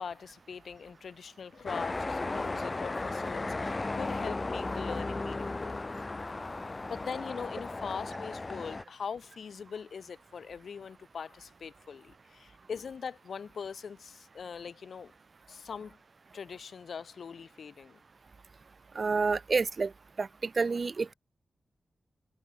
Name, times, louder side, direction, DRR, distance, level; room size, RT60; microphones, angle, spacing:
voice 1, 0.0-5.8 6.8-15.1 15.5-16.0 16.3-18.0, left 6 dB, 75° left, 7.8 m, -41 dB
sound 1, 1.7-8.8, left 2 dB, 30° left, 1.2 m, -35 dB
voice 2, 18.9-19.9 20.2-21.1, right 4 dB, 50° right, 3.4 m, -29 dB
wide cardioid pair, 80°, 0 cm